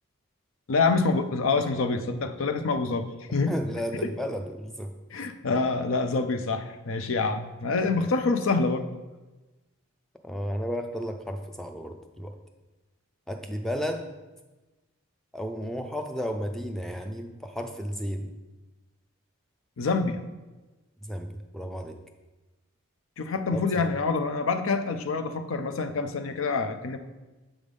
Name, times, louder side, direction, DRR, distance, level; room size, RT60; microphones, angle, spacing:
voice 1, 0.7-3.5 4.0-4.1 5.1-8.9 19.8-20.2 23.2-27.0, left 4 dB, 70° left, 8 dB, 0.5 m, -26 dB
voice 2, 3.3-4.9 10.2-12.3 13.3-14.2 15.3-18.3 21.0-22.0 23.5-23.9, equal, ahead, 5 dB, 0.4 m, -33 dB
7.2 x 3.4 x 5.3 m, 1.1 s
head